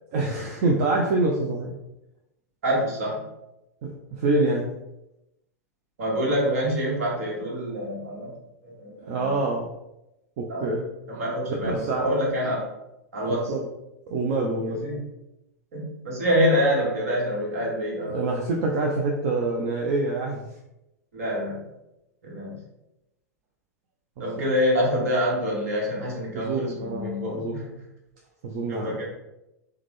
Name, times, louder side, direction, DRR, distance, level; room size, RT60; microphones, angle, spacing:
voice 1, 0.1-1.7 3.8-4.7 9.0-9.7 10.4-10.9 11.5-12.1 12.4-12.5 13.3-13.7 14.1-14.8 18.1-20.4 24.4-24.6 26.3-27.6 28.4-29.0, right 2 dB, 45° right, -1 dB, 0.5 m, -26 dB
voice 2, 2.6-3.2 6.0-8.3 8.6-9.3 10.5-10.6 11.1-12.6 13.1-13.5 14.8-15.0 15.7-18.2 21.1-21.6 22.2-22.6 24.2-27.7 28.7-29.0, equal, 60° right, -3 dB, 1.3 m, -26 dB
3.5 x 2.2 x 3.3 m, 0.91 s
figure-of-eight pair, 95°, 9 cm